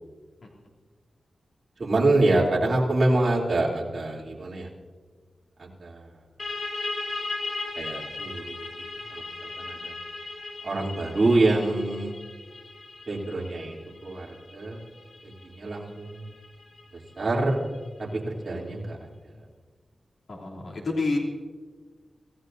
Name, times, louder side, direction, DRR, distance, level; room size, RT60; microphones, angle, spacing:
voice 1, 1.8-4.7 5.6-6.1 7.8-8.7 9.1-9.9 10.6-12.1 13.1-13.8 14.0-14.8 15.5-16.2 17.2-17.6 18.0-19.0, right 2 dB, 45° right, -4 dB, 3.1 m, -26 dB
sound 1, 6.4-17.8, left 3 dB, 55° left, 1.6 m, -37 dB
voice 2, 20.3-21.2, left 3 dB, 70° left, -3 dB, 3.1 m, -29 dB
26.0 x 15.5 x 2.7 m, 1.5 s
wide cardioid pair, 135°, 0 cm